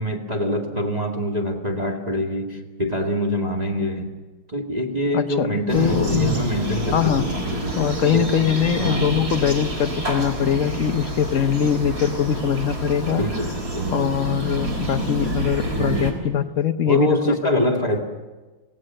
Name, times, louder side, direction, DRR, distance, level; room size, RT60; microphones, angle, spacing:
voice 1, 0.0-4.1 4.5-7.8 8.1-8.3 8.8-9.1 13.1-14.1 15.8-16.2 16.9-18.0, equal, 20° right, 1 dB, 2.2 m, -25 dB
voice 2, 5.1-6.3 6.9-7.3 7.8-13.3 13.9-17.6, left 9 dB, 65° left, 9 dB, 0.8 m, -22 dB
sound 1, 5.7-16.1, right 1 dB, 45° right, 4.1 m, -27 dB
26.5 x 17.5 x 7.6 m, 1.2 s
omnidirectional pair, 2.4 m